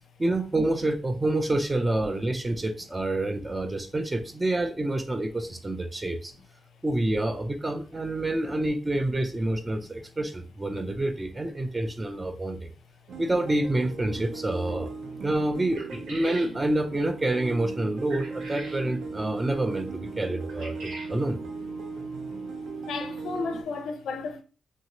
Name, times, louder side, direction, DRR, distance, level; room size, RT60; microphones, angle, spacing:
voice 1, 0.2-6.3 6.8-12.7 13.2-14.9 15.2-21.4, right 1 dB, 15° right, 0.3 m, -28 dB
sound 1, 13.1-23.6, right 4 dB, 65° right, 0.6 m, -38 dB
sound 2, 15.8-16.5 18.1-18.8 20.5-21.1, right 2 dB, 85° right, 1.3 m, -41 dB
voice 2, 22.9-24.4, left 4 dB, 80° left, 0.5 m, -33 dB
2.7 x 2.7 x 2.9 m
wide cardioid pair, 170°, 0 cm